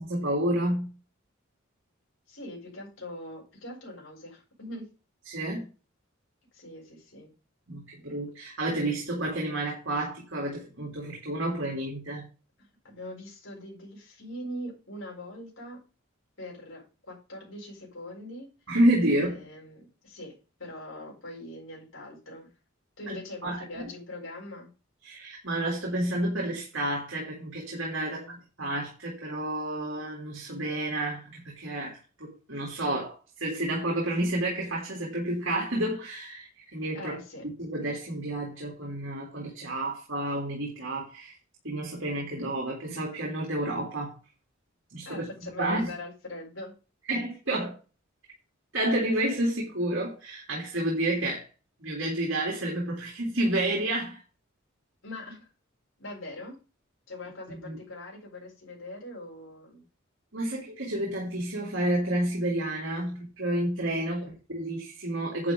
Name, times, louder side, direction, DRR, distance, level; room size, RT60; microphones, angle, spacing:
voice 1, 0.1-0.9 5.3-5.7 7.7-12.2 18.7-19.4 23.1-23.8 25.0-28.2 28.6-37.2 37.6-41.3 41.6-44.1 44.9-45.2 45.6-45.9 47.1-47.7 48.7-51.5 51.8-54.2 57.5-57.8 60.3-65.5, right 1 dB, 65° right, 3.2 m, -30 dB
voice 2, 2.3-4.8 6.5-7.3 12.6-15.8 16.4-18.5 19.0-22.5 23.0-24.7 28.0-28.4 36.9-37.4 45.0-46.7 55.0-55.5 56.0-56.5 57.1-59.8 64.0-64.3, left 1 dB, 70° left, 6.8 m, -42 dB
11.0 x 8.5 x 3.9 m
head